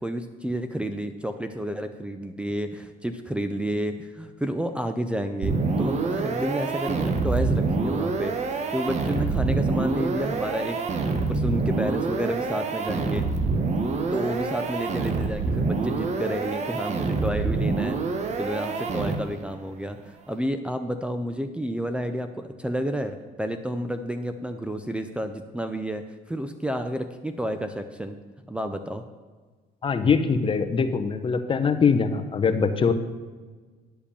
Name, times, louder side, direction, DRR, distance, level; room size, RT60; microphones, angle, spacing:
voice 1, 0.0-8.3 8.7-10.8 11.3-13.3 14.1-18.0 18.4-28.2 28.5-29.0, equal, 5° right, 5 dB, 0.5 m, -30 dB
sound 1, 5.4-19.5, right 3 dB, 40° right, 1.0 m, -26 dB
voice 2, 29.8-32.9, left 5 dB, 30° left, 9 dB, 0.8 m, -22 dB
10.5 x 5.0 x 6.8 m, 1.4 s
cardioid pair, 110°, 17 cm